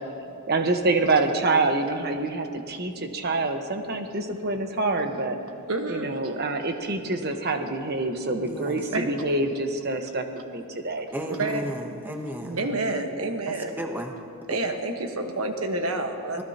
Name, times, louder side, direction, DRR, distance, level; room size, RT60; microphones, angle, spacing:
voice 1, 0.5-5.4 5.9-11.1 12.4-12.9, right 2 dB, 45° right, 5 dB, 1.2 m, -26 dB
voice 2, 5.7-6.4 8.9-9.1 11.3-11.7 12.6-13.7 14.5-16.4, right 2 dB, 70° right, 4 dB, 1.3 m, -28 dB
voice 3, 8.4-8.9 11.1-12.6 13.5-14.1 16.4-16.5, equal, 10° right, 2 dB, 0.9 m, -34 dB
25.0 x 18.0 x 2.9 m, 2.4 s
head